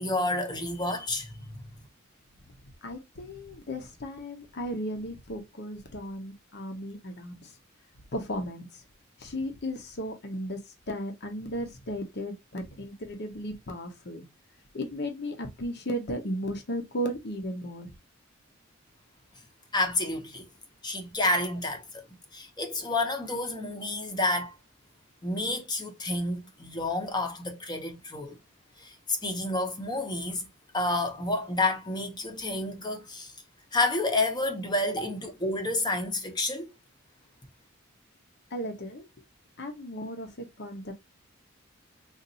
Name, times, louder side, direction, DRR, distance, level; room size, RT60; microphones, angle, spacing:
voice 1, 0.0-1.7 19.7-20.5 20.8-22.0 22.3-24.5 25.2-28.4 28.8-30.5 30.7-33.3 33.7-36.7, left 2 dB, 20° left, 0.9 m, -29 dB
voice 2, 2.8-7.5 8.1-8.8 9.2-10.6 10.9-14.2 14.7-17.9 38.5-39.0 39.6-40.9, equal, 55° left, 0.9 m, -35 dB
3.9 x 2.6 x 2.7 m
head